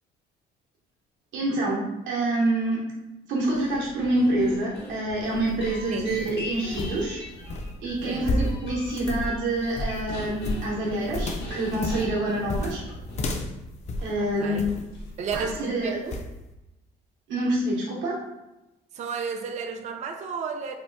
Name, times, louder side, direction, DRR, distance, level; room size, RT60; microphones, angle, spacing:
voice 1, 1.3-3.0 3.3-7.2 7.8-12.8 14.0-14.7 15.3-16.0 17.3-18.2, right 1 dB, 80° right, -4 dB, 0.9 m, -27 dB
sound 1, 3.5-13.6 14.0-14.1 14.9-15.2 15.5-16.0, left 1 dB, 65° left, 0.9 m, -41 dB
sound 2, 5.2-14.9 15.3-15.7 16.1-16.3, left 1 dB, 35° left, 0.4 m, -32 dB
voice 2, 15.2-16.2 18.9-20.8, right 5 dB, 40° right, 5 dB, 0.4 m, -32 dB
2.9 x 2.2 x 3.2 m, 0.96 s
supercardioid pair, 80°, 19 cm